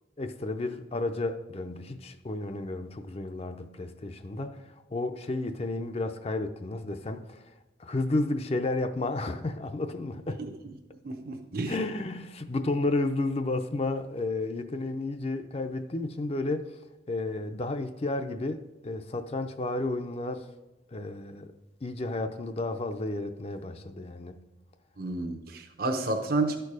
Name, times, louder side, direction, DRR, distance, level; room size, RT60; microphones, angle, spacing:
voice 1, 0.2-7.5 7.8-10.4 11.7-16.7 17.1-20.5 20.9-21.5 21.8-24.4, left 2 dB, 35° left, 0.5 m, -32 dB
voice 2, 11.0-11.7 25.0-26.6, right 2 dB, 55° right, 0.8 m, -30 dB
12.5 x 4.6 x 4.8 m
head